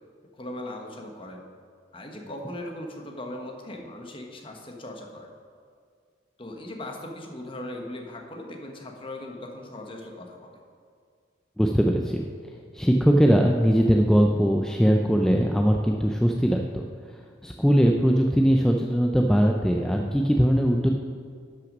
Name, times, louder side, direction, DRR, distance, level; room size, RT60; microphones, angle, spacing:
voice 1, 0.3-1.4 1.9-5.3 6.4-10.6, left 1 dB, 30° left, 2 dB, 1.2 m, -39 dB
voice 2, 11.6-12.3 12.7-20.9, equal, 5° left, 1 dB, 0.4 m, -21 dB
12.0 x 6.0 x 5.2 m, 2.1 s
head